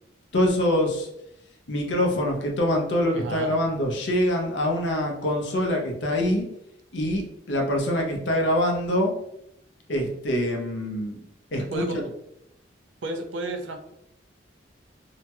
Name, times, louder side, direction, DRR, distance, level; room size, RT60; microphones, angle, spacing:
voice 1, 0.3-1.1 1.7-6.5 6.9-9.1 9.9-11.2 11.5-11.8, left 1 dB, 75° left, 0 dB, 0.7 m, -24 dB
voice 2, 3.1-3.5 11.7-12.1 13.0-13.8, right 2 dB, 85° right, 5 dB, 0.5 m, -32 dB
2.8 x 2.2 x 2.9 m, 0.77 s
head